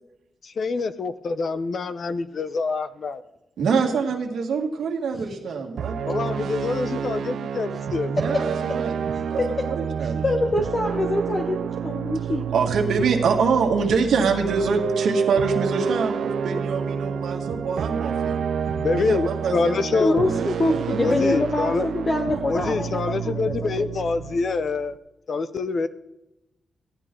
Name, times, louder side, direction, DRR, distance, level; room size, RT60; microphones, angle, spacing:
voice 1, 0.4-3.2 6.1-8.1 18.7-20.2 21.0-21.9 22.5-25.0 25.3-25.9, left 4 dB, 50° left, 13 dB, 0.6 m, -26 dB
voice 2, 3.6-6.0 8.1-10.2 12.5-18.4 18.9-21.1, right 5 dB, 90° right, 1 dB, 1.8 m, -25 dB
sound 1, 5.8-24.9, right 7 dB, 75° right, 0.5 m, -29 dB
voice 3, 9.1-9.7 10.2-12.5 20.0-23.7, left 2 dB, 30° left, 2 dB, 1.2 m, -25 dB
16.0 x 11.0 x 3.7 m, 0.90 s
wide cardioid pair, 145°, 0 cm